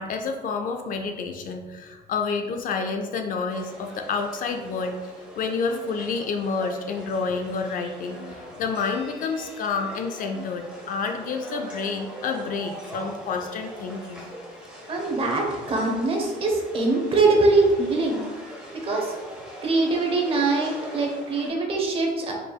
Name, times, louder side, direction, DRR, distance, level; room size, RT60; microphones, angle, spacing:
voice 1, 0.0-14.3, left 4 dB, 55° left, 5 dB, 0.4 m, -29 dB
sound 1, 3.5-21.5, equal, 5° right, 1.3 m, -42 dB
voice 2, 14.9-18.2 18.8-19.1 19.6-22.3, right 3 dB, 35° right, 0 dB, 0.9 m, -22 dB
4.2 x 3.4 x 2.3 m, 1.3 s
cardioid pair, 110°, 17 cm